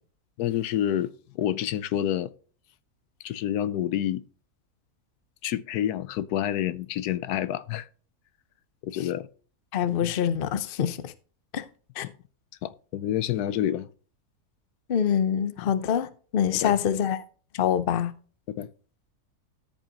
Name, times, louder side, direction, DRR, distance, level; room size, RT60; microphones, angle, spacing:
voice 1, 0.4-2.3 3.2-4.2 5.4-7.9 8.8-9.3 10.0-10.1 12.0-12.1 12.6-13.9 15.6-15.7 16.5-16.8 18.6-18.7, left 11 dB, 85° left, 1.1 m, -28 dB
voice 2, 9.7-11.1 11.5-11.6 12.0-12.1 14.9-17.2 17.5-18.1, left 8 dB, 50° left, 0.7 m, -25 dB
13.5 x 5.4 x 2.9 m
omnidirectional pair, 1.6 m